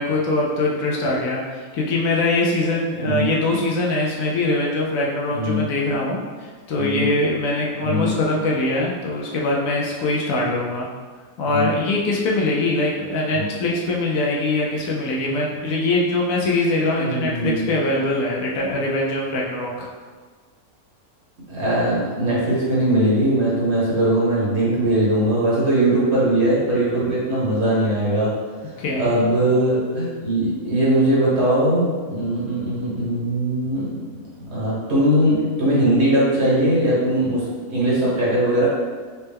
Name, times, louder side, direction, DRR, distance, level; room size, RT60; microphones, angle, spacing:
voice 1, 0.0-10.9 11.4-19.9 28.8-29.1, left 2 dB, 70° left, -3 dB, 0.9 m, -22 dB
voice 2, 5.3-5.6 6.7-7.1 7.8-8.1 11.5-11.7 13.3-13.5 16.9-17.7 21.5-28.3 29.0-34.1 34.4-38.7, right 1 dB, 50° right, -7 dB, 1.2 m, -20 dB
4.2 x 2.1 x 3.4 m, 1.5 s
omnidirectional pair, 1.6 m